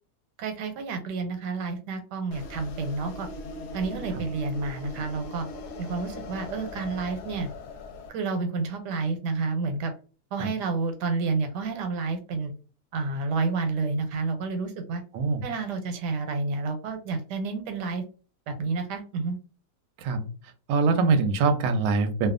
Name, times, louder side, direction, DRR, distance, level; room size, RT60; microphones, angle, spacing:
voice 1, 0.4-3.3 3.7-5.5 5.8-7.5 8.1-9.9 10.3-12.5 12.9-15.0 15.4-18.0 18.5-19.4, right 4 dB, 85° right, 7 dB, 1.2 m, -30 dB
sound 1, 2.3-8.1, left 2 dB, 75° left, 1.1 m, -39 dB
voice 2, 20.7-22.3, right 4 dB, 70° right, 6 dB, 0.9 m, -23 dB
2.7 x 2.2 x 2.4 m, 0.36 s
omnidirectional pair, 1.8 m